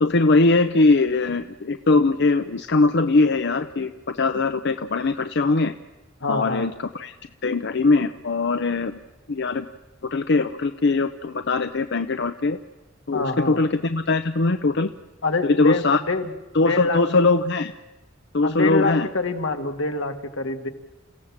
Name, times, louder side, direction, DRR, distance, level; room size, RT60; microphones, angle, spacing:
voice 1, 0.0-5.7 6.3-7.1 7.4-9.0 9.3-9.7 10.0-12.6 13.1-14.9 15.4-16.0 16.5-17.7 18.3-19.1, left 3 dB, 60° left, 8 dB, 0.7 m, -21 dB
voice 2, 6.2-6.7 13.1-13.6 15.2-16.3 16.6-17.0 18.4-20.7, left 3 dB, 85° left, 5 dB, 1.9 m, -26 dB
29.0 x 16.0 x 7.3 m, 1.1 s
head